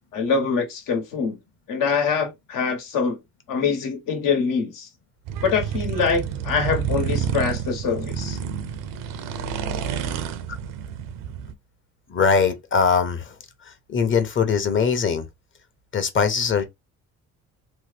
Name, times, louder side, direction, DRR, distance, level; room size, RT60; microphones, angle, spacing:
voice 1, 0.1-1.4 1.7-3.2 3.5-4.9 5.4-8.4, left 5 dB, 75° left, 1.3 m, -24 dB
sound 1, 5.3-11.5, right 8 dB, 85° right, 0.6 m, -29 dB
voice 2, 12.1-13.3 13.9-15.2 15.9-16.7, left 6 dB, 35° left, 0.9 m, -21 dB
3.1 x 2.1 x 3.2 m
cardioid pair, 105°, 32 cm